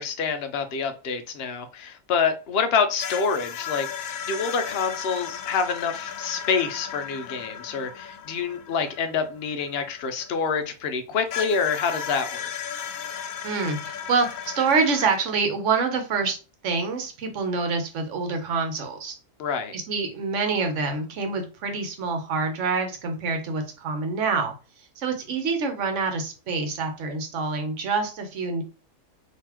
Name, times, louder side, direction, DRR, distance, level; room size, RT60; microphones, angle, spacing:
voice 1, 0.0-12.5 19.4-19.7, left 5 dB, 60° left, 0.7 m, -27 dB
sound 1, 3.0-10.7 11.3-15.2, left 8 dB, 85° left, 1.0 m, -35 dB
voice 2, 13.4-16.4 16.6-19.1 19.7-24.5 25.0-28.6, right 4 dB, 65° right, 1.2 m, -26 dB
3.8 x 2.9 x 2.9 m
omnidirectional pair, 1.4 m